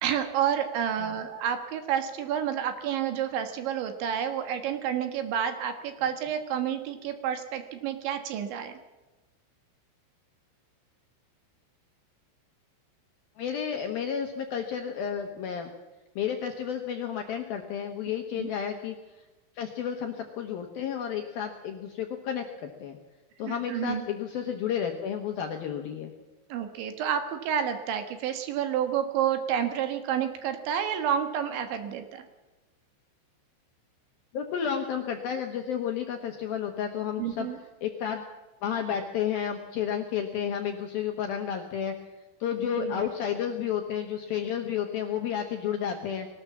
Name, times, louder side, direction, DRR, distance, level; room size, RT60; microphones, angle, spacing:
voice 1, 0.0-8.8 18.4-18.5 23.4-24.0 26.5-32.3 37.2-37.6 42.8-43.1, right 9 dB, 70° right, 8 dB, 3.5 m, -29 dB
voice 2, 13.4-15.7 16.2-19.2 19.6-23.0 23.4-26.1 34.3-37.5 37.8-38.2 38.6-42.0 42.4-46.3, left 8 dB, 70° left, 3 dB, 2.3 m, -31 dB
21.0 x 18.5 x 7.4 m, 1.1 s
omnidirectional pair, 6.0 m